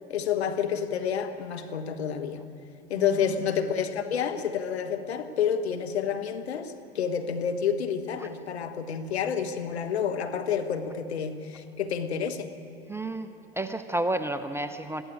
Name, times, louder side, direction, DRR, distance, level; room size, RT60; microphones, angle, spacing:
voice 1, 0.1-2.4 2.9-12.5, left 7 dB, 75° left, 7 dB, 1.4 m, -29 dB
voice 2, 12.9-13.3 13.6-15.0, right 1 dB, 10° right, 10 dB, 0.7 m, -31 dB
21.5 x 15.0 x 8.6 m, 2.8 s
hypercardioid pair, 85°, 32 cm